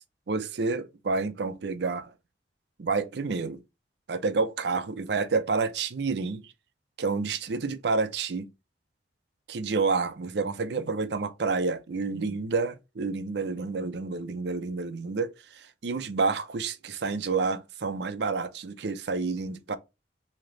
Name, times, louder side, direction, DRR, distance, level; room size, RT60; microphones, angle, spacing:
voice 1, 0.3-2.1 2.8-3.6 4.1-6.4 7.0-8.5 9.5-19.8, right 4 dB, 65° right, 0.5 m, -29 dB
3.2 x 2.9 x 3.7 m
head